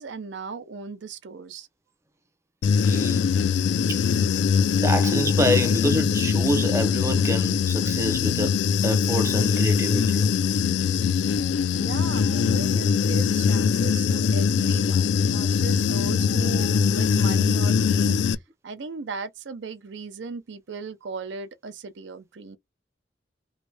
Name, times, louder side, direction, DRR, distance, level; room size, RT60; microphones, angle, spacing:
voice 1, 0.0-1.7 11.4-18.4 18.6-22.6, right 4 dB, 85° right, 0.5 m, -37 dB
Human voice / Buzz, 2.6-18.3, left 6 dB, 80° left, 0.3 m, -22 dB
voice 2, 2.8-3.3 3.9-4.0 4.7-10.3 14.2-14.3, equal, 15° right, 0.5 m, -27 dB
3.2 x 2.6 x 3.2 m
head